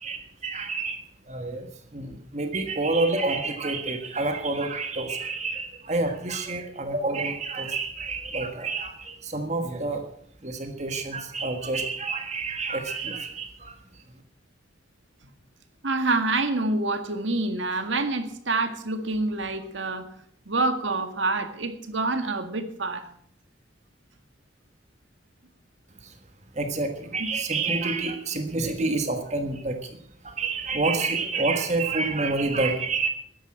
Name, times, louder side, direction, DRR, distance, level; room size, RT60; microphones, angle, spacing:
voice 1, 0.0-1.0 1.3-10.0 10.4-13.7 26.6-29.8 30.2-33.1, right 3 dB, 35° right, 6 dB, 1.5 m, -28 dB
voice 2, 15.8-20.1 20.5-23.0 27.2-27.3, right 3 dB, 80° right, 8 dB, 1.9 m, -27 dB
14.0 x 10.5 x 7.4 m, 0.65 s
head